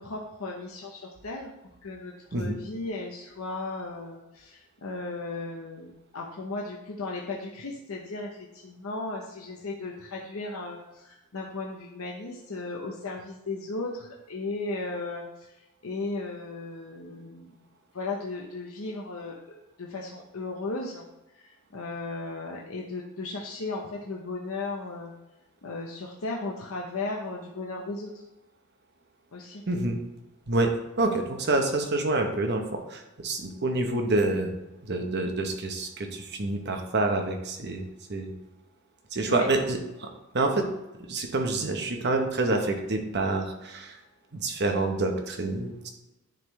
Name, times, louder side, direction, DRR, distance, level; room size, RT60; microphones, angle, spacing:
voice 1, 0.0-1.5 1.8-17.5 17.9-19.4 19.8-21.1 21.3-25.1 25.6-28.2 29.3-29.6 39.3-39.5, left 3 dB, 70° left, -1 dB, 0.8 m, -36 dB
voice 2, 29.7-30.0 30.5-34.5 34.8-37.8 38.1-38.3 39.1-40.7 41.1-44.0 44.3-45.9, right 2 dB, 50° right, 4 dB, 0.9 m, -27 dB
10.0 x 3.8 x 3.1 m, 0.99 s
head